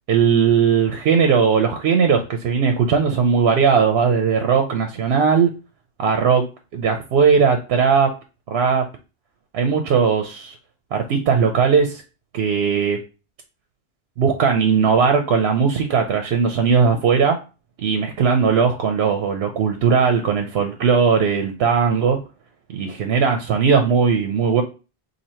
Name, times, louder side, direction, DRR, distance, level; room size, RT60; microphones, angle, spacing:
voice 1, 0.1-5.5 6.0-6.4 6.7-8.1 8.5-8.9 9.5-10.5 10.9-12.0 12.3-13.0 14.2-17.4 17.8-22.2 22.7-24.6, right 6 dB, 80° right, 5 dB, 0.8 m, -18 dB
2.8 x 2.7 x 4.2 m, 0.32 s
omnidirectional pair, 1.0 m